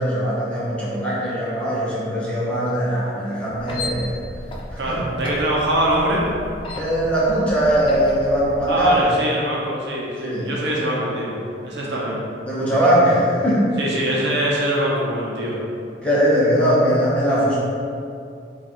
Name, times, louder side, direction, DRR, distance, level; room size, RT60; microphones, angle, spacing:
voice 1, 0.0-4.2 4.7-5.0 6.8-9.2 10.2-10.5 11.8-12.0 12.4-13.7 16.0-17.5, equal, 5° left, -9 dB, 0.8 m, -20 dB
sound 1, 3.5-9.1, left 1 dB, 25° left, 0.4 m, -35 dB
voice 2, 4.8-6.3 8.7-11.4 11.6-12.2 13.8-15.6, right 1 dB, 60° right, -4 dB, 0.8 m, -23 dB
4.6 x 2.5 x 4.4 m, 2.4 s
head